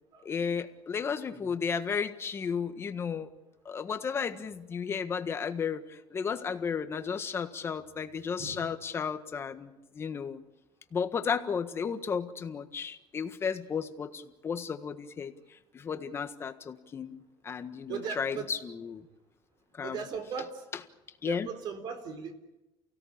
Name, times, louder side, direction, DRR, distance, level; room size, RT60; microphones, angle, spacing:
voice 1, 0.2-3.3 3.6-10.4 10.9-19.0 19.8-20.0 20.7-20.8 21.2-21.5, left 6 dB, 25° left, 9 dB, 1.5 m, -34 dB
voice 2, 17.9-18.5 19.8-20.5 21.3-22.4, right 6 dB, 45° right, 7 dB, 3.8 m, -37 dB
29.5 x 17.0 x 8.7 m, 1.0 s
cardioid pair, 155°, 10 cm